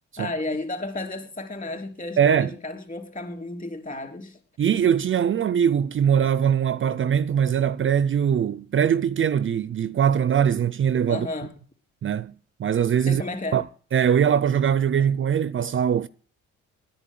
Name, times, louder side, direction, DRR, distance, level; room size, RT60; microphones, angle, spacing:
voice 1, 0.2-4.4 11.1-11.5 13.1-13.6, left 2 dB, 25° left, 3.4 m, -32 dB
voice 2, 2.2-2.5 4.6-11.3 12.0-12.3 12.6-13.2 13.5-13.6 13.9-16.1, right 8 dB, 45° right, 0.6 m, -21 dB
10.0 x 9.0 x 9.3 m
cardioid pair, 90°, 30 cm